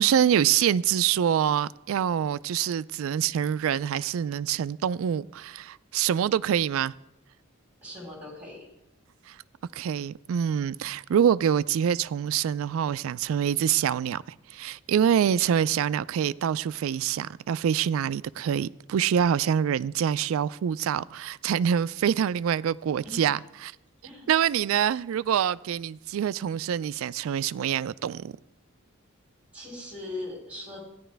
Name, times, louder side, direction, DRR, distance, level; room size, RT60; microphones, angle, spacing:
voice 1, 0.0-6.9 9.3-9.4 9.7-14.2 14.5-23.7 24.3-28.4, right 9 dB, 75° right, 0.3 m, -25 dB
voice 2, 7.8-8.7 23.0-23.4 24.0-24.3 29.5-30.8, left 2 dB, 5° right, 4.0 m, -39 dB
14.0 x 10.0 x 3.4 m
head